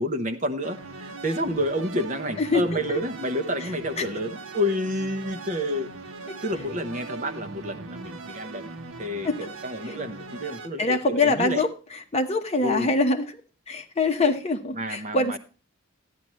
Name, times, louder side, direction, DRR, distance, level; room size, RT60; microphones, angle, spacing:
voice 1, 0.0-5.9 6.4-8.7 9.0-11.7 12.6-12.9 14.7-15.4, equal, 35° right, 7 dB, 1.0 m, -29 dB
sound 1, 0.6-10.7, right 3 dB, 75° right, 1.0 m, -40 dB
voice 2, 10.8-11.7 12.1-13.4 13.7-15.4, left 3 dB, 30° left, 5 dB, 1.1 m, -23 dB
13.0 x 10.5 x 3.1 m, 0.34 s
head